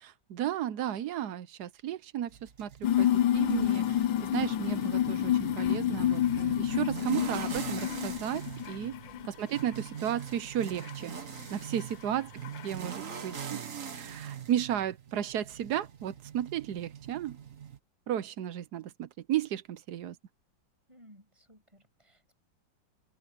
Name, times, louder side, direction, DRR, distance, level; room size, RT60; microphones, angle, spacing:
voice 1, 0.0-2.3 2.6-2.7 3.0-4.0 4.3-8.9 9.3-11.1 11.5-12.3 12.6-13.6 13.9-17.4 18.1-20.2, right 11 dB, 65° right, 1.2 m, -34 dB
sound 1, 2.3-17.8, right 7 dB, 45° right, 1.6 m, -43 dB
sound 2, 2.8-9.3 9.5-10.1 10.8-10.9 11.8-11.9 12.4-12.7, left 11 dB, 75° left, 1.4 m, -29 dB
voice 2, 20.9-22.4, equal, 15° right, 6.8 m, -57 dB
open air
omnidirectional pair, 2.0 m